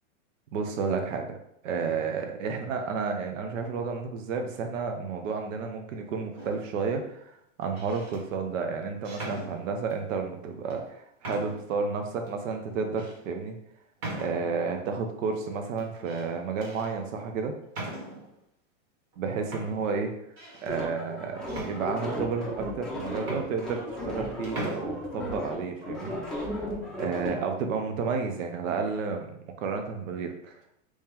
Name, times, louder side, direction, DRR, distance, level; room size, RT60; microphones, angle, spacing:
voice 1, 0.5-1.4 1.6-13.6 14.2-17.5 19.2-20.1 20.6-26.5 26.8-30.6, right 5 dB, 80° right, 4 dB, 0.7 m, -31 dB
sound 1, 6.4-6.8 7.6-8.2 9.0-10.0 10.7-10.8 11.2-11.8 12.3-12.4 13.0-13.2 14.0-14.7 15.8-16.3 16.6-16.9 17.7-18.3 19.1-19.2 19.5-20.8 21.5-22.3 22.9-23.0 23.2-24.2 24.4-24.8, right 2 dB, 40° right, 1.4 m, -40 dB
sound 2, 20.7-27.4, left 1 dB, ahead, 0.6 m, -35 dB
3.1 x 2.8 x 3.6 m, 0.74 s
supercardioid pair, 140°, 38 cm